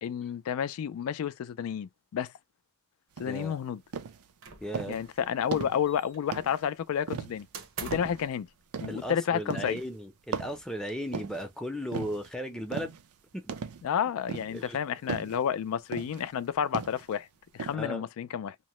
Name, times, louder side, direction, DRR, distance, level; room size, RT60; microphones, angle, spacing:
voice 1, 0.0-2.3 3.2-3.8 4.9-7.5 7.8-8.5 8.8-9.8 13.8-17.3 17.5-18.6, left 8 dB, 65° left, 0.3 m, -31 dB
voice 2, 3.2-3.6 4.6-5.0 8.9-12.9 13.3-13.4 14.5-14.8 17.7-18.0, equal, 5° left, 0.5 m, -36 dB
sound 1, 3.2-3.5 3.9-4.2 4.7-5.1 5.5-5.9 6.3-6.7 7.1-7.5 7.9-8.3 8.7-9.1 9.5-9.9 10.3-11.5 11.9-12.3 12.7-13.1 13.5-13.9 14.3-14.7 15.1-15.4 15.9-16.3 16.7-17.1 17.6-17.8, right 5 dB, 80° right, 0.5 m, -37 dB
sound 2, 4.4-5.2 5.5-6.4 7.5-8.3, right 5 dB, 65° right, 0.8 m, -42 dB
2.8 x 2.0 x 2.9 m
head